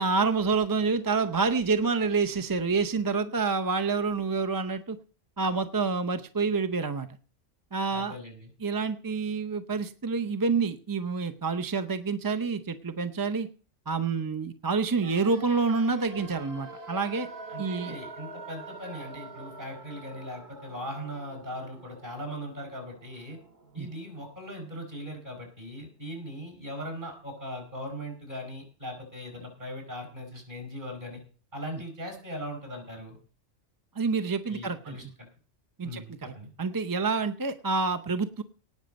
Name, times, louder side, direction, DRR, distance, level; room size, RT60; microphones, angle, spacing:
voice 1, 0.0-5.0 5.4-7.1 7.7-8.1 8.6-13.5 13.9-17.3 17.6-17.9 23.8-23.9 34.0-35.0 35.8-36.3 36.6-38.4, right 4 dB, 25° right, 9 dB, 0.5 m, -28 dB
voice 2, 7.9-8.5 17.5-23.4 23.7-31.2 31.5-33.2 34.5-35.3 35.8-36.5, equal, 40° right, 4 dB, 5.5 m, -39 dB
sound 1, 15.0-24.9 25.2-25.3, right 2 dB, 60° right, 2.3 m, -46 dB
18.0 x 6.6 x 5.2 m, 0.38 s
omnidirectional pair, 1.3 m